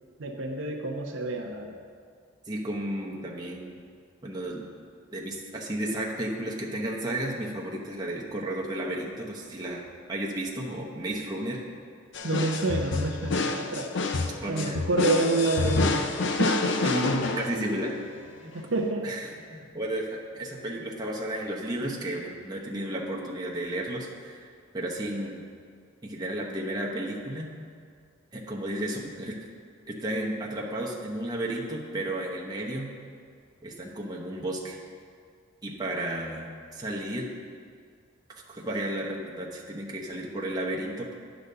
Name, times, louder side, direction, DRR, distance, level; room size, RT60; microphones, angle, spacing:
voice 1, 0.2-1.8 12.2-13.9 14.5-16.0 16.4-16.7 18.5-19.1, right 2 dB, 65° right, 1 dB, 0.7 m, -28 dB
voice 2, 2.5-3.8 4.2-4.7 5.1-9.8 10.1-11.6 14.4-14.8 16.8-17.9 18.4-18.6 19.0-25.4 26.0-27.5 28.3-29.4 29.9-32.9 33.6-34.8 35.6-37.3 38.3-41.1, right 1 dB, 20° right, -3 dB, 1.0 m, -33 dB
sound 1, 12.1-18.0, left 3 dB, 60° left, 0.5 m, -28 dB
10.0 x 4.1 x 6.7 m, 2.2 s
head